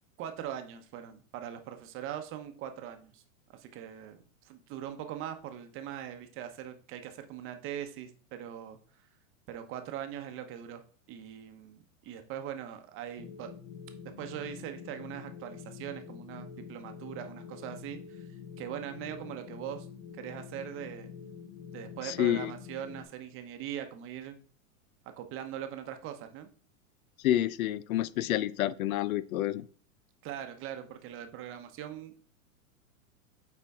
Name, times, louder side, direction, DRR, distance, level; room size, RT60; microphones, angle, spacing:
voice 1, 0.2-3.2 3.5-8.8 9.5-10.8 11.1-13.5 14.2-18.3 18.6-19.9 20.1-21.1 21.7-24.4 25.2-26.5 30.2-32.2, right 10 dB, 30° right, 0.8 m, -41 dB
sound 1, 13.2-23.0, left 7 dB, 45° left, 1.2 m, -46 dB
voice 2, 22.0-22.5 27.2-29.7, left 13 dB, 80° left, 0.5 m, -29 dB
6.9 x 4.4 x 3.5 m
hypercardioid pair, 130°, 42 cm